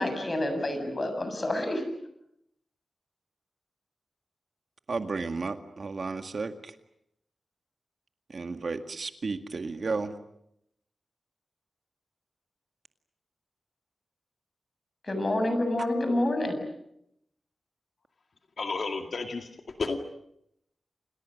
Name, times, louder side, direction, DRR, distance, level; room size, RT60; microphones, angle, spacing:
voice 1, 0.0-1.8 15.0-16.6, left 1 dB, 35° left, 7 dB, 7.6 m, -28 dB
voice 2, 4.9-6.5 8.3-10.1, right 4 dB, 55° right, 7 dB, 2.0 m, -33 dB
voice 3, 18.6-20.0, left 4 dB, 65° left, 5 dB, 2.2 m, -32 dB
30.0 x 28.0 x 6.6 m, 0.76 s
wide cardioid pair, 100°, 0 cm